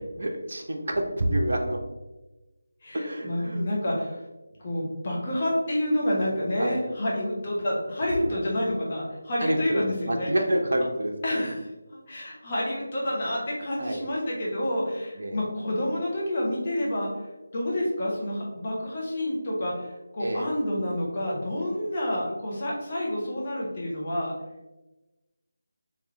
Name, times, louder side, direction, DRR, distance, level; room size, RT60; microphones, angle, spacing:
voice 1, 0.2-1.8 2.9-3.6 6.6-6.8 8.2-8.4 9.4-11.4 13.8-14.0 15.2-15.4 20.2-20.5, right 1 dB, 55° right, 1 dB, 0.6 m, -28 dB
voice 2, 2.8-4.2 4.6-10.3 11.2-24.3, left 1 dB, 35° left, -4 dB, 1.1 m, -29 dB
3.6 x 3.4 x 3.1 m, 1.1 s
figure-of-eight pair, 160°, 0 cm